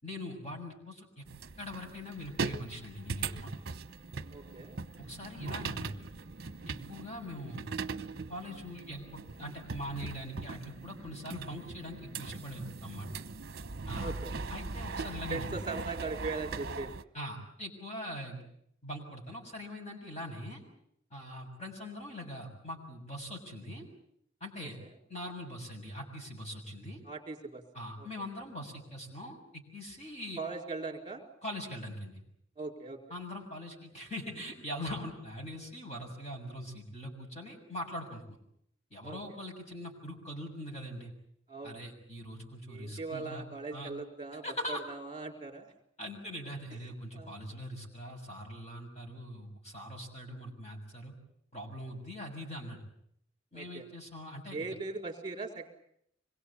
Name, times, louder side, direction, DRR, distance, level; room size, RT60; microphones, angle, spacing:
voice 1, 0.0-1.2 1.6-3.5 5.0-6.1 6.6-7.7 8.3-13.1 13.9-14.1 14.5-15.6 17.1-18.4 18.8-20.6 21.1-23.8 24.4-24.8 25.1-27.0 27.7-30.4 31.4-32.2 33.1-38.2 38.9-41.1 41.6-43.4 43.7-43.9 44.4-44.8 46.0-51.1 51.5-52.8 53.5-54.7, equal, 35° left, 0 dB, 6.7 m, -42 dB
sound 1, 1.3-17.0, right 4 dB, 50° right, 0.9 m, -40 dB
voice 2, 4.3-4.8 14.0-14.3 15.3-16.9 24.6-24.9 27.0-27.6 28.0-28.1 30.4-31.2 32.6-33.0 39.0-39.2 41.5-41.8 42.7-45.7 47.1-47.4 53.5-53.8 54.5-55.7, right 3 dB, 25° right, 3 dB, 4.4 m, -40 dB
26.0 x 22.0 x 8.5 m, 0.72 s
head